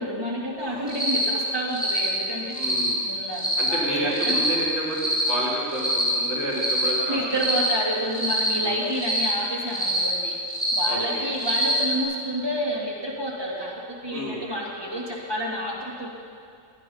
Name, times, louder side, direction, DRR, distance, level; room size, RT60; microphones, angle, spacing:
voice 1, 0.0-2.5 3.1-4.4 7.1-10.4 10.7-16.1, equal, 20° right, -5 dB, 2.5 m, -29 dB
Cricket, 0.9-1.3 1.7-2.1 2.5-2.9 3.3-3.7 4.1-4.5 4.9-5.3 5.7-6.1 6.5-6.9 7.3-7.7 8.1-8.5 8.9-9.3 9.7-10.0 10.5-10.9 11.3-11.8, equal, 5° left, 4.2 m, -25 dB
voice 2, 2.5-3.0 3.6-7.2 8.6-8.8 10.9-11.3 14.1-14.4, right 1 dB, 65° right, -6 dB, 4.1 m, -30 dB
16.5 x 9.9 x 5.8 m, 2.3 s
omnidirectional pair, 1.3 m